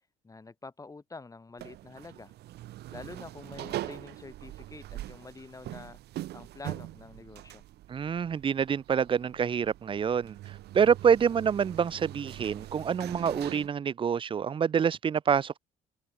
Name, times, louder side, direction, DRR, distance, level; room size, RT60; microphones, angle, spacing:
voice 1, 0.2-2.3 2.9-6.0 6.3-7.6, left 3 dB, 20° left, 5.2 m, -47 dB
sound 1, 1.6-13.7, right 15 dB, 75° right, 4.6 m, -42 dB
voice 2, 7.9-15.6, right 7 dB, 30° right, 0.6 m, -27 dB
cardioid pair, 110°, 17 cm